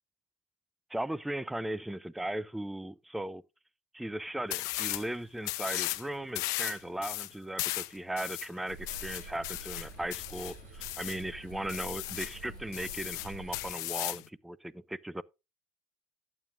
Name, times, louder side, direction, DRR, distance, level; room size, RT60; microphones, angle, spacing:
voice 1, 0.9-3.4 3.9-15.2, right 1 dB, 5° right, 0.4 m, -37 dB
sound 1, 4.5-5.1 5.4-6.0 6.4-11.2 11.7-12.4 12.7-14.3, left 20 dB, 70° left, 0.7 m, -36 dB
sound 2, 8.7-13.7, right 2 dB, 85° right, 5.9 m, -47 dB
12.5 x 9.0 x 2.5 m
supercardioid pair, 105°, 6 cm